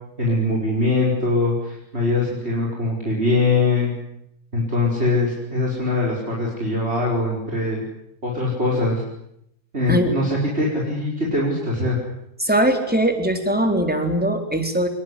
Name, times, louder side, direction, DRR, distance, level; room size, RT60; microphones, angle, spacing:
voice 1, 0.2-3.9 4.5-7.8 8.2-9.0 9.7-12.0, left 2 dB, 40° right, -3 dB, 5.7 m, -22 dB
voice 2, 12.4-14.9, right 1 dB, 5° right, 5 dB, 4.0 m, -20 dB
25.5 x 22.0 x 10.0 m, 0.79 s
omnidirectional pair, 1.7 m